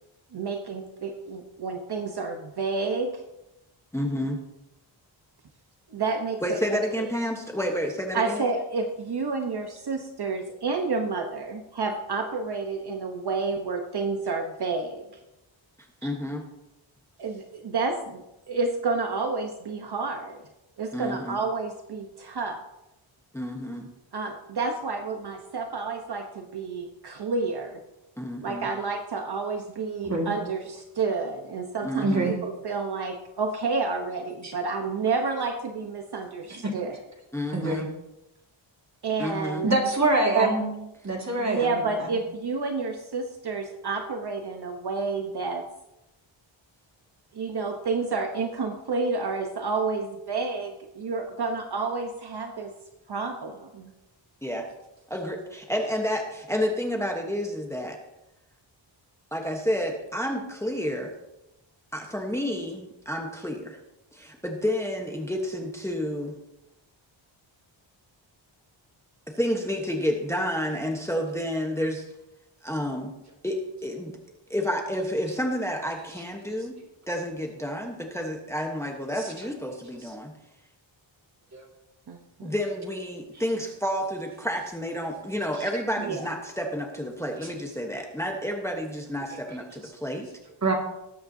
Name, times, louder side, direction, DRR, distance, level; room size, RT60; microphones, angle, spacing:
voice 1, 0.3-3.2 5.9-6.8 8.1-15.0 17.2-20.4 20.8-22.6 24.1-27.8 28.4-37.0 39.0-39.8 40.3-40.5 41.4-45.6 47.3-52.7 53.1-53.9 82.1-82.5 86.0-86.3, right 4 dB, 55° right, 4 dB, 1.0 m, -30 dB
voice 2, 3.9-4.4 6.4-8.4 16.0-16.4 20.9-21.4 23.3-23.9 28.2-28.7 31.8-32.3 37.3-37.9 39.2-39.7 54.4-54.7 55.1-58.0 59.3-61.1 61.9-63.8 64.1-66.3 69.3-72.0 72.6-73.1 73.4-74.1 74.5-76.8 77.1-80.3 82.4-90.3, equal, 5° left, 2 dB, 1.0 m, -30 dB
voice 3, 32.0-32.3 36.5-36.7 37.5-37.8 39.6-40.7 41.0-41.9 81.5-81.6 90.6-90.7, right 2 dB, 35° right, 0 dB, 2.1 m, -25 dB
19.5 x 8.8 x 2.7 m, 0.93 s
wide cardioid pair, 160°, 48 cm